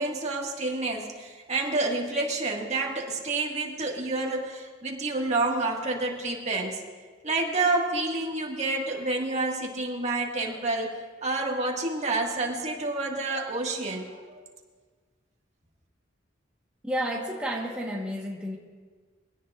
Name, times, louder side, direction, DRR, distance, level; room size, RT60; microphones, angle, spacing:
voice 1, 0.0-6.8 7.2-14.4, right 2 dB, 35° right, 0 dB, 1.8 m, -29 dB
voice 2, 16.8-18.6, equal, 5° right, -4 dB, 1.3 m, -31 dB
23.0 x 17.0 x 2.5 m, 1.5 s
head